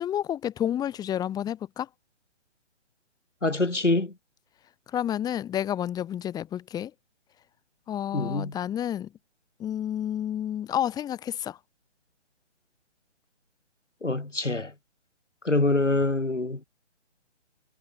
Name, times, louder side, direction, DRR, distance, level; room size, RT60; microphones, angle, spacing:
voice 1, 0.0-1.9 4.9-6.9 7.9-9.1 9.6-11.6, left 10 dB, 10° left, 5.6 m, -30 dB
voice 2, 3.4-4.1 8.1-8.5 14.0-14.7 15.4-16.6, left 2 dB, 85° left, 8.0 m, -25 dB
figure-of-eight pair, 145°, 35 cm